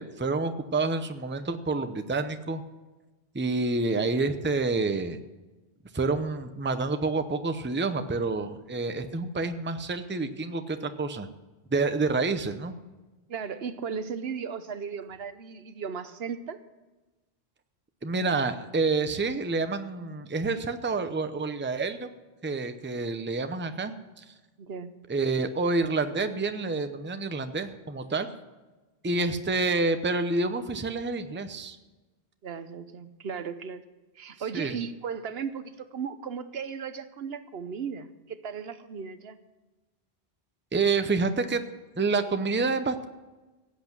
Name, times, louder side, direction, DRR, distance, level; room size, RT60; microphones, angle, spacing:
voice 1, 0.0-2.6 3.3-5.2 5.9-11.3 11.7-12.7 18.0-22.1 22.4-24.2 25.1-28.3 29.0-31.8 34.5-34.8 40.7-41.6 42.0-43.1, right 3 dB, 15° right, 9 dB, 0.6 m, -28 dB
voice 2, 13.3-16.6 24.6-24.9 32.4-33.8 34.2-39.4, right 6 dB, 70° right, 12 dB, 1.0 m, -36 dB
16.0 x 8.4 x 6.0 m, 1.2 s
omnidirectional pair, 1.1 m